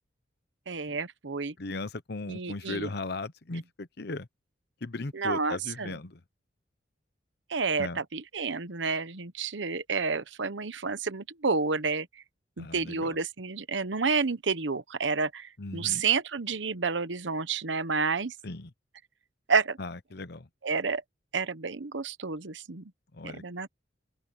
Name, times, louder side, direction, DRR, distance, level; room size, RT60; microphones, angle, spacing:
voice 1, 0.7-1.5 2.3-2.9 5.1-5.9 7.5-12.1 12.6-18.3 19.5-19.8 20.6-21.0 21.3-22.8 23.2-23.7, right 4 dB, 90° right, 1.0 m, -30 dB
voice 2, 1.6-4.3 4.8-6.2 7.8-8.0 12.6-13.2 15.6-16.0 18.4-18.7 19.8-20.5 23.1-23.4, left 2 dB, 60° left, 1.0 m, -37 dB
open air
head